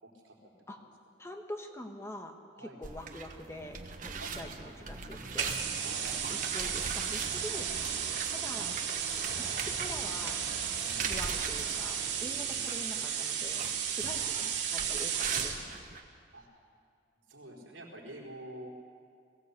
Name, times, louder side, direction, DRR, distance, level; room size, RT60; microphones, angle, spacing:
voice 1, 0.0-0.5 2.6-2.8 4.2-4.3 5.8-6.1 14.1-14.3 16.3-16.5 17.3-18.7, right 1 dB, 80° right, -2 dB, 4.5 m, -47 dB
voice 2, 1.2-3.8 4.0-5.6 6.3-7.7 8.3-8.8 9.4-10.4 11.0-15.8, left 1 dB, 15° left, 4 dB, 1.2 m, -45 dB
sound 1, 2.8-16.0, right 5 dB, 45° right, 1.3 m, -41 dB
sound 2, 5.4-15.6, right 8 dB, 65° right, 2.6 m, -34 dB
sound 3, 8.1-14.2, equal, 5° right, 7.1 m, -51 dB
21.5 x 16.0 x 8.3 m, 2.3 s
head